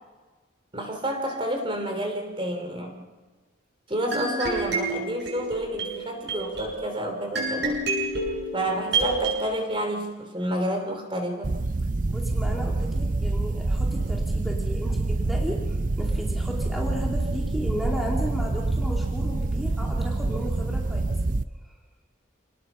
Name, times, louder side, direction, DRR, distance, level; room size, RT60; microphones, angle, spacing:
voice 1, 0.7-3.1 3.9-7.8 8.5-11.6, equal, 25° right, 4 dB, 3.2 m, -30 dB
sound 1, 4.1-9.4, right 3 dB, 55° right, 7.6 m, -29 dB
sound 2, 11.4-21.4, right 2 dB, 40° right, 0.6 m, -26 dB
voice 2, 12.1-21.1 21.6-21.7, equal, ahead, -2 dB, 2.6 m, -34 dB
27.5 x 19.5 x 5.7 m, 1.3 s
head